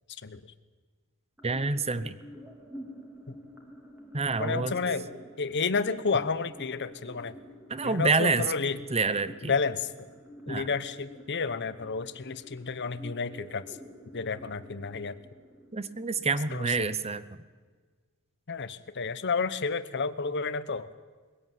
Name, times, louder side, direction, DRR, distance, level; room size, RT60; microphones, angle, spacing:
sound 1, 1.4-17.4, left 1 dB, 10° right, 3.5 m, -49 dB
voice 1, 1.4-2.2 4.1-4.8 7.7-8.5 8.9-9.5 10.5-10.7 15.7-17.2, right 4 dB, 30° right, 14 dB, 0.9 m, -27 dB
voice 2, 4.4-5.1 5.4-7.4 7.8-8.8 9.5-9.9 10.5-13.8 14.1-15.2 16.5-16.7 18.5-20.9, left 4 dB, 55° left, 13 dB, 1.0 m, -31 dB
22.0 x 17.0 x 9.3 m, 1.5 s
head